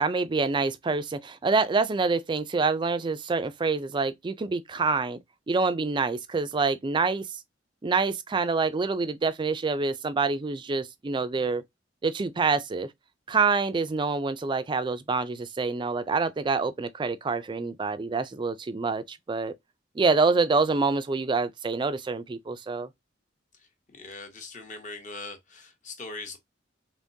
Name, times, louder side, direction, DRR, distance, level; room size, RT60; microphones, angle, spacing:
voice 1, 0.0-5.2 5.5-7.3 7.8-11.6 12.0-12.9 13.3-19.5 20.0-22.9, right 4 dB, 25° right, 0.4 m, -26 dB
voice 2, 23.9-26.4, left 3 dB, 40° left, 0.9 m, -41 dB
3.6 x 3.0 x 2.6 m
head